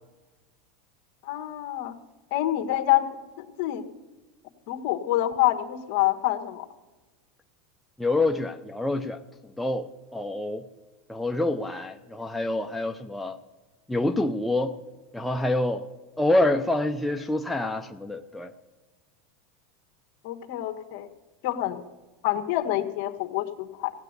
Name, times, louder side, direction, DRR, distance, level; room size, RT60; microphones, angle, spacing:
voice 1, 1.2-1.9 2.3-3.0 3.4-3.8 4.7-6.7 20.2-21.1 21.4-21.8 22.2-23.9, left 14 dB, 55° left, 6 dB, 1.4 m, -26 dB
voice 2, 8.0-9.2 9.6-10.6 11.1-13.4 13.9-14.7 15.1-15.9 16.2-18.5, left 2 dB, 5° left, 4 dB, 0.5 m, -26 dB
16.0 x 8.8 x 8.1 m, 1.2 s
supercardioid pair, 145°, 0 cm